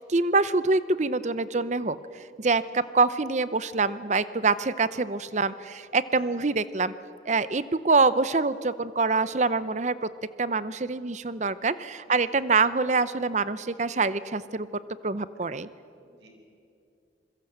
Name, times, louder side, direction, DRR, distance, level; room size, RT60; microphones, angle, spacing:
voice 1, 0.0-2.0 2.4-6.9 7.3-10.1 10.4-14.7 15.0-15.7, right 3 dB, 40° right, 15 dB, 0.7 m, -25 dB
voice 2, 12.1-12.4 16.0-16.3, right 1 dB, 75° right, 3 dB, 5.0 m, -55 dB
25.5 x 22.0 x 7.9 m, 2.6 s
head